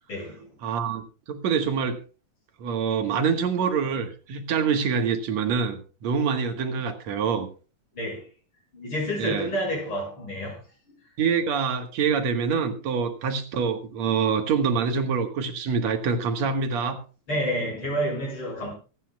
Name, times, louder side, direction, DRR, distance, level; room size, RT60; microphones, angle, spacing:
voice 1, 0.1-0.5 7.9-8.3 8.7-10.6 17.3-18.7, equal, 45° left, 7.2 m, -29 dB
voice 2, 0.6-2.0 2.6-7.5 9.2-9.5 11.2-17.0, right 6 dB, 70° right, 2.7 m, -25 dB
25.0 x 9.8 x 2.3 m
omnidirectional pair, 3.4 m